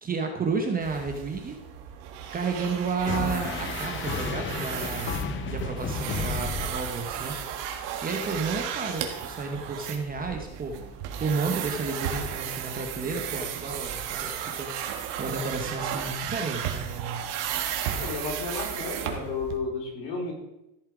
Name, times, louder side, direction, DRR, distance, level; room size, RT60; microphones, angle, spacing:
voice 1, 0.0-1.6 2.3-5.2 5.4-7.4 8.0-10.8 11.2-14.7 15.2-17.2, right 4 dB, 20° right, 3 dB, 0.8 m, -31 dB
sound 1, 0.8-19.6, right 9 dB, 55° right, 1.8 m, -34 dB
sound 2, 3.1-7.4, left 4 dB, 25° left, 0.7 m, -32 dB
voice 2, 18.0-20.3, left 4 dB, 50° left, 0 dB, 3.5 m, -32 dB
14.0 x 7.4 x 4.9 m, 0.90 s
cardioid pair, 160°, 50 cm